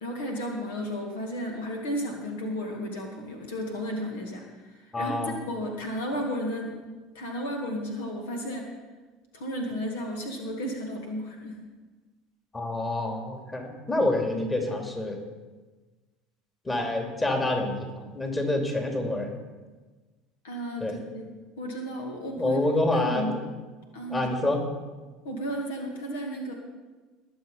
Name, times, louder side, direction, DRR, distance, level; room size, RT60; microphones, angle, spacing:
voice 1, 0.0-6.8 7.1-8.7 9.3-11.6 20.4-22.6 22.9-23.4 23.9-24.3 25.2-26.5, equal, 70° left, 2 dB, 2.0 m, -33 dB
voice 2, 4.9-5.3 12.5-15.2 16.6-19.3 20.8-21.0 22.4-23.4 24.1-24.6, left 2 dB, 20° left, 3 dB, 2.8 m, -27 dB
20.5 x 7.1 x 5.6 m, 1.3 s
figure-of-eight pair, 70°, 0 cm